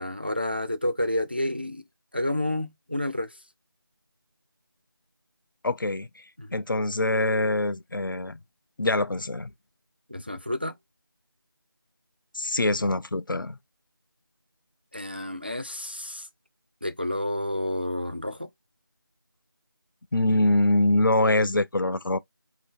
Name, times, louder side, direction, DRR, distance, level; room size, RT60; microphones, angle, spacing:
voice 1, 0.0-1.8 2.1-3.3 6.4-6.5 10.1-10.8 14.9-16.3 16.8-18.5, left 1 dB, 25° right, 0.3 m, -30 dB
voice 2, 5.6-6.2 6.5-8.4 8.8-9.5 12.3-13.6 20.1-22.2, left 2 dB, 60° left, 0.5 m, -24 dB
4.8 x 2.8 x 3.4 m
figure-of-eight pair, 175°, 12 cm